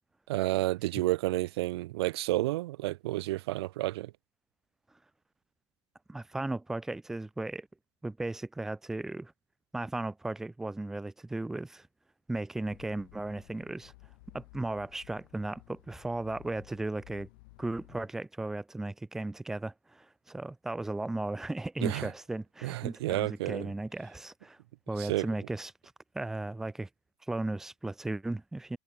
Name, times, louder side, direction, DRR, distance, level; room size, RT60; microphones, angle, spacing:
voice 1, 0.3-4.1 21.8-22.1 22.6-23.7 25.0-25.3, right 17 dB, 55° right, 1.9 m, -30 dB
voice 2, 6.1-7.7 8.0-9.3 9.7-11.9 12.3-13.9 14.3-17.3 17.6-24.6 24.9-25.7 26.1-26.9 27.3-28.8, right 2 dB, 5° right, 0.4 m, -36 dB
sound 1, 12.7-18.1, left 27 dB, 45° left, 4.3 m, -56 dB
supercardioid pair, 180°, 15 cm